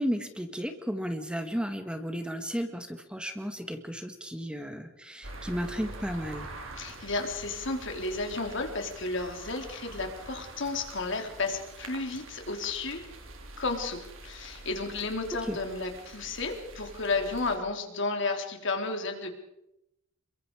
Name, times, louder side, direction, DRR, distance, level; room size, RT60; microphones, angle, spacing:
voice 1, 0.0-6.5 15.5-15.6, equal, 5° right, 7 dB, 1.6 m, -34 dB
sound 1, 5.2-17.6, right 2 dB, 75° right, 3.9 m, -45 dB
voice 2, 6.7-13.0 13.6-19.3, left 3 dB, 65° left, 4 dB, 3.7 m, -32 dB
28.0 x 23.0 x 4.9 m, 0.86 s
head